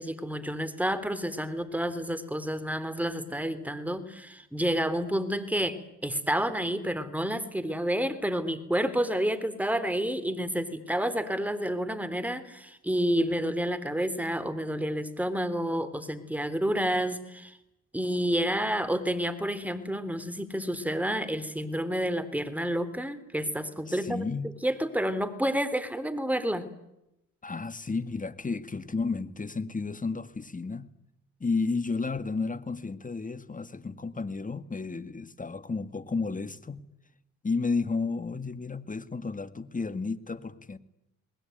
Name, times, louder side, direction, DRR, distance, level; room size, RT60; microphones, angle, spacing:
voice 1, 0.0-17.5 17.9-26.7, equal, 5° right, 12 dB, 3.5 m, -29 dB
voice 2, 23.9-24.5 27.4-30.9 31.4-36.8 37.4-40.8, left 4 dB, 25° left, 12 dB, 1.9 m, -32 dB
28.5 x 20.5 x 9.4 m, 0.88 s
supercardioid pair, 65°, 33 cm